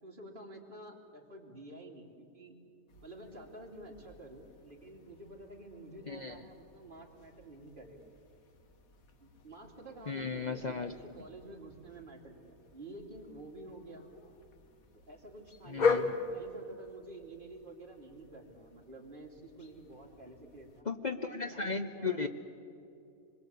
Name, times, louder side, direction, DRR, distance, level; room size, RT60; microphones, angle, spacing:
voice 1, 0.0-2.6 3.0-8.0 9.2-14.0 15.0-20.9 21.3-22.3, right 2 dB, 35° right, -1 dB, 3.1 m, -50 dB
sound 1, 2.9-20.8, left 4 dB, 80° left, 1.8 m, -41 dB
voice 2, 6.1-6.4 10.1-10.9 15.7-16.1 20.8-22.3, left 4 dB, 40° left, 7 dB, 0.8 m, -35 dB
25.5 x 21.5 x 8.3 m, 2.5 s
omnidirectional pair, 1.5 m